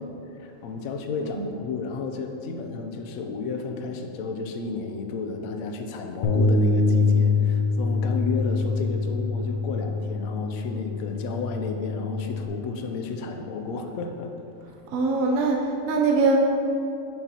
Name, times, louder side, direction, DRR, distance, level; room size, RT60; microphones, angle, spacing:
voice 1, 0.4-14.3, left 4 dB, 90° left, 4 dB, 1.0 m, -32 dB
Bass guitar, 6.2-12.5, left 3 dB, 60° left, 0.5 m, -24 dB
voice 2, 14.9-16.4, right 3 dB, 75° right, 0 dB, 1.0 m, -23 dB
6.9 x 6.1 x 2.8 m, 2.8 s
omnidirectional pair, 1.4 m